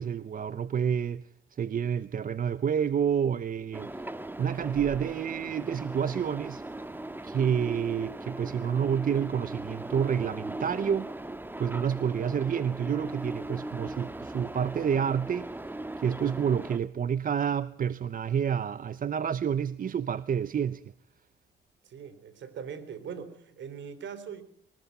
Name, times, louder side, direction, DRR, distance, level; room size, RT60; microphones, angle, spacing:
voice 1, 0.0-6.6 7.2-11.1 11.6-15.5 16.0-20.9, right 8 dB, 45° right, 0.8 m, -29 dB
sound 1, 3.7-16.8, right 1 dB, 10° right, 1.7 m, -39 dB
voice 2, 21.8-24.4, right 7 dB, 70° right, 4.2 m, -41 dB
23.5 x 20.0 x 5.5 m
cardioid pair, 90°, 20 cm